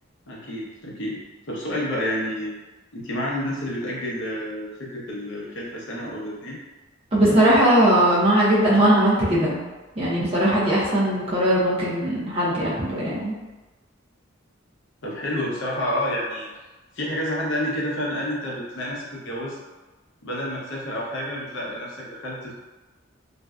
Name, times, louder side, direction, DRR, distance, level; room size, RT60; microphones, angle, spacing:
voice 1, 0.3-2.5 2.9-6.6 12.5-12.9 15.0-16.5 16.9-19.6 20.2-22.5, left 1 dB, 70° left, -4 dB, 0.6 m, -29 dB
voice 2, 7.1-9.6 10.0-13.3, right 1 dB, 30° right, -8 dB, 0.6 m, -19 dB
2.5 x 2.2 x 2.2 m, 1.2 s
head